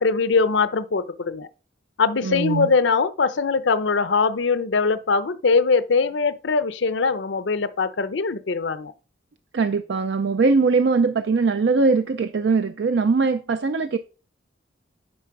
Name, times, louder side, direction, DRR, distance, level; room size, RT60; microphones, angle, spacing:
voice 1, 0.0-1.5 2.0-8.9, left 4 dB, 70° left, 0.6 m, -22 dB
voice 2, 2.2-2.7 9.5-14.0, right 4 dB, 65° right, 0.4 m, -21 dB
9.6 x 3.4 x 5.8 m
head